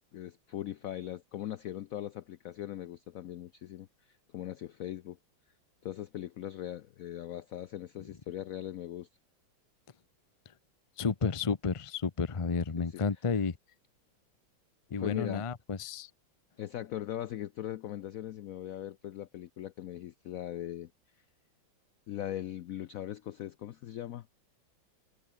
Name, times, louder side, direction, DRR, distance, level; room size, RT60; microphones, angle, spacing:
voice 1, 0.1-5.2 5.8-9.1 12.8-13.0 15.0-15.4 16.6-20.9 22.1-24.3, left 12 dB, 80° left, 0.7 m, -40 dB
voice 2, 11.0-13.6 14.9-16.1, left 5 dB, 35° left, 0.5 m, -31 dB
omnidirectional pair, 2.2 m